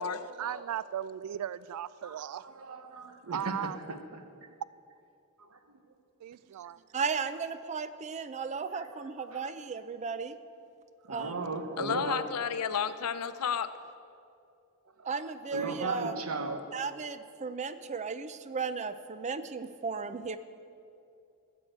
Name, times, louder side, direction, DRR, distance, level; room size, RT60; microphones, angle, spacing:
voice 1, 0.4-2.5 3.3-3.8 6.2-6.8, right 10 dB, 90° right, 0.3 m, -37 dB
voice 2, 2.0-4.5 5.4-5.6 8.7-9.5 11.0-12.3 15.0-16.7, right 3 dB, 70° right, 1.1 m, -38 dB
voice 3, 6.9-10.4 11.1-11.4 15.0-16.1 16.7-20.4, right 5 dB, 30° right, 0.5 m, -35 dB
voice 4, 11.8-13.7, left 7 dB, 90° left, 0.6 m, -31 dB
14.5 x 7.1 x 7.9 m
head